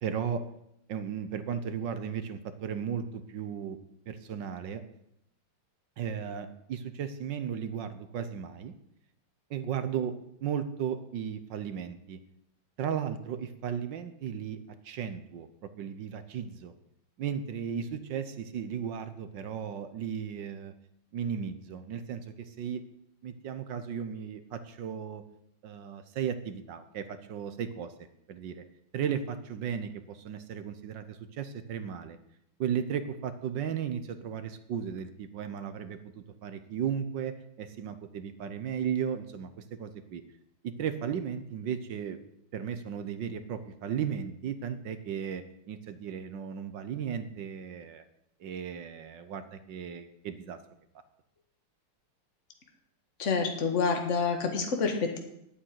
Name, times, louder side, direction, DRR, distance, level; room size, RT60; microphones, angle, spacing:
voice 1, 0.0-0.4 0.9-3.8 4.1-4.8 6.0-8.7 9.5-10.1 10.4-12.2 12.8-14.6 14.8-15.5 15.8-16.7 17.2-20.7 21.1-22.8 23.2-25.2 25.6-27.9 28.3-28.6 28.9-32.2 32.6-40.2 40.6-42.2 42.5-48.0 48.4-50.6, right 8 dB, 65° right, 11 dB, 1.4 m, -35 dB
voice 2, 53.2-55.2, left 5 dB, 35° left, 3 dB, 1.9 m, -28 dB
8.8 x 8.8 x 9.5 m, 0.79 s
omnidirectional pair, 2.4 m